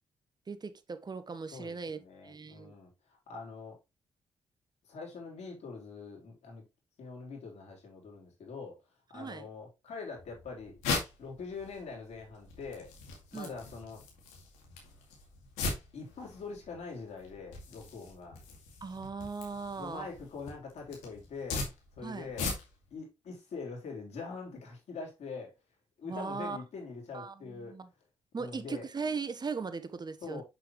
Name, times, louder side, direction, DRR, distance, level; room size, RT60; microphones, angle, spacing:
voice 1, 0.5-2.7 9.1-9.5 13.3-13.5 18.8-20.1 22.0-22.3 26.0-26.6 27.1-27.9 28.3-30.4, right 4 dB, 35° right, 1.1 m, -38 dB
voice 2, 1.5-3.8 4.8-6.6 7.0-8.8 9.1-10.8 11.2-12.9 13.3-14.0 15.9-18.4 19.7-21.6 22.0-22.5 22.9-25.5 26.0-27.7 28.3-28.9 30.2-30.4, left 4 dB, 70° left, 3.6 m, -43 dB
sound 1, 10.2-22.9, left 4 dB, 90° left, 2.2 m, -40 dB
6.9 x 6.1 x 3.1 m
supercardioid pair, 50°, 12 cm